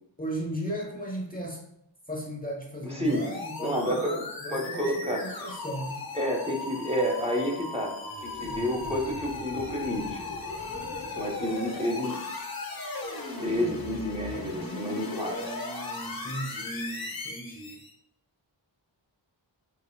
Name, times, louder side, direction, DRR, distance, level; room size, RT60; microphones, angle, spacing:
voice 1, 0.2-1.6 2.1-6.0 15.2-17.8, right 1 dB, 20° left, -2 dB, 0.7 m, -36 dB
voice 2, 2.8-3.3 3.6-4.2 4.5-5.6 6.1-8.0 8.2-10.2 11.2-12.2 13.4-15.6, equal, 15° right, -1 dB, 0.8 m, -30 dB
sound 1, 3.0-17.9, left 2 dB, 50° left, 0.9 m, -37 dB
6.9 x 3.0 x 2.2 m, 0.79 s
wide cardioid pair, 70°, 46 cm